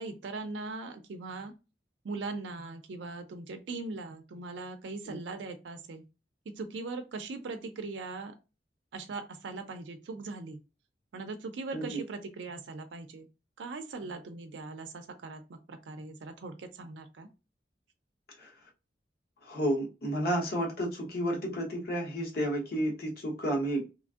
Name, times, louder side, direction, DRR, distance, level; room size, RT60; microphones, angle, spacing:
voice 1, 0.0-1.5 2.0-6.0 6.6-8.3 8.9-10.6 11.1-13.3 13.6-17.3, right 3 dB, 85° right, 7 dB, 0.4 m, -40 dB
voice 2, 19.5-23.8, right 1 dB, 60° left, 0 dB, 1.0 m, -31 dB
2.9 x 2.5 x 2.3 m, 0.29 s
head